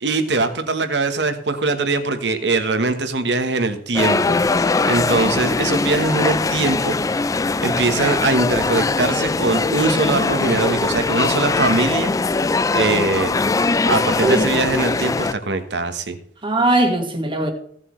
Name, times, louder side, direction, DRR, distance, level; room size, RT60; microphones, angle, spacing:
voice 1, 0.0-6.9 7.6-12.1 12.7-13.4 13.9-16.2, right 3 dB, 75° right, 1.3 m, -21 dB
sound 1, 3.9-15.3, left 3 dB, 20° left, 0.3 m, -21 dB
voice 2, 13.9-14.6 16.4-17.5, right 2 dB, 30° right, 1.6 m, -21 dB
16.5 x 7.6 x 3.2 m
head